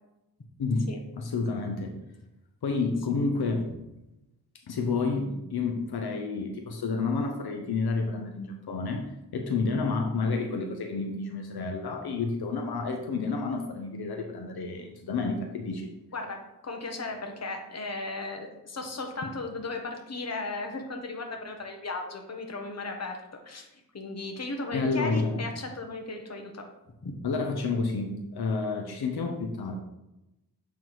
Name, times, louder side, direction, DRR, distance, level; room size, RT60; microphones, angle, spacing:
voice 1, 0.6-2.0 2.6-3.6 4.7-15.9 24.7-25.4 27.2-29.8, left 4 dB, 90° left, 3 dB, 0.8 m, -30 dB
voice 2, 16.1-23.2 23.4-26.6 27.0-27.1, left 3 dB, 45° left, 3 dB, 1.2 m, -36 dB
7.6 x 3.6 x 4.7 m, 0.93 s
wide cardioid pair, 80°, 37 cm